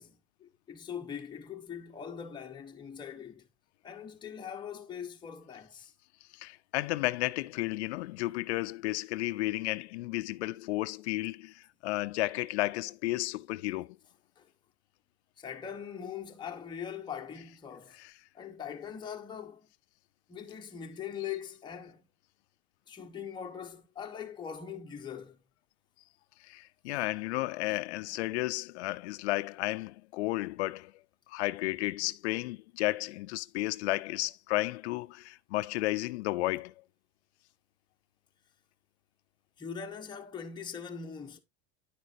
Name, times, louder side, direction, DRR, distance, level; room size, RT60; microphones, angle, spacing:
voice 1, 0.0-3.5 3.8-5.9 14.4-14.5 15.4-18.0 18.3-19.7 20.3-22.0 22.9-25.4 39.6-41.4, left 7 dB, 15° left, 1.1 m, -42 dB
voice 2, 6.4-14.0 18.0-18.1 26.4-30.9 31.3-36.7, left 19 dB, 85° left, 0.6 m, -33 dB
10.0 x 6.5 x 2.7 m
supercardioid pair, 155°, 33 cm